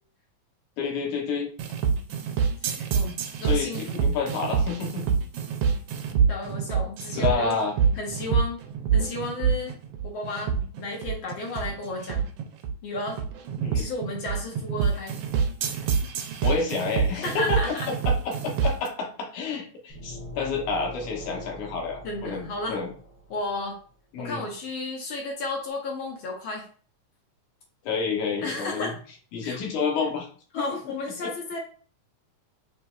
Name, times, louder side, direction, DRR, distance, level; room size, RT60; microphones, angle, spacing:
voice 1, 0.8-1.5 3.4-5.2 7.1-7.7 13.6-13.9 16.4-22.9 24.1-24.4 27.8-28.9 29.3-30.3 30.6-30.7 31.2-31.3, left 4 dB, 85° left, 1 dB, 2.5 m, -29 dB
sound 1, 1.6-18.9, right 6 dB, 80° right, 1.5 m, -26 dB
voice 2, 2.6-4.1 6.3-7.6 8.0-8.6 8.9-12.3 12.8-13.2 13.7-15.2 15.7-15.9 17.2-17.9 22.0-22.8 23.3-23.8 24.2-26.7 28.4-28.9 29.4-29.6 30.5-31.6, left 2 dB, 70° left, 0 dB, 1.2 m, -33 dB
sound 2, 19.9-23.6, equal, 50° left, 2.6 m, -42 dB
6.3 x 3.0 x 2.3 m, 0.42 s
omnidirectional pair, 3.3 m